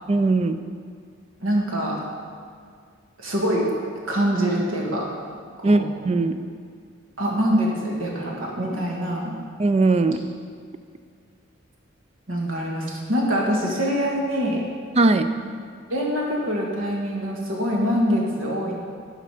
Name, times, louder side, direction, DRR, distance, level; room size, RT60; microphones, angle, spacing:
voice 1, 0.1-0.6 5.6-6.4 9.6-10.2 15.0-15.3, right 3 dB, 30° right, 10 dB, 0.4 m, -19 dB
voice 2, 1.4-2.0 3.2-3.7 4.1-5.1 5.6-5.9 7.2-9.4 12.3-14.6 15.9-18.7, equal, 80° right, -2 dB, 1.7 m, -24 dB
11.0 x 5.1 x 4.9 m, 2.2 s
head